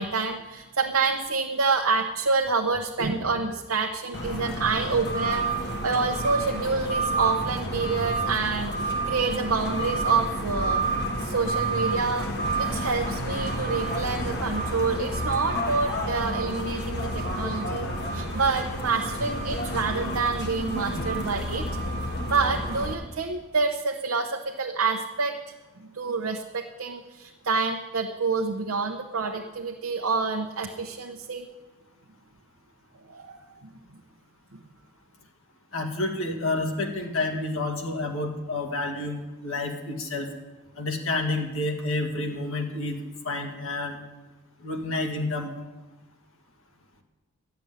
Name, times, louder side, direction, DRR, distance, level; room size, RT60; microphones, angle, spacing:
voice 1, 0.0-10.8 11.2-12.3 12.6-21.7 22.3-25.4 25.8-31.5 33.1-33.4, right 4 dB, 65° right, 3 dB, 0.8 m, -27 dB
sound 1, 4.1-22.9, right 1 dB, 50° left, 1.5 m, -30 dB
voice 2, 35.7-40.3 40.8-44.0 44.6-45.5, left 2 dB, 65° left, 2 dB, 2.1 m, -29 dB
12.5 x 6.9 x 9.4 m, 1.2 s
head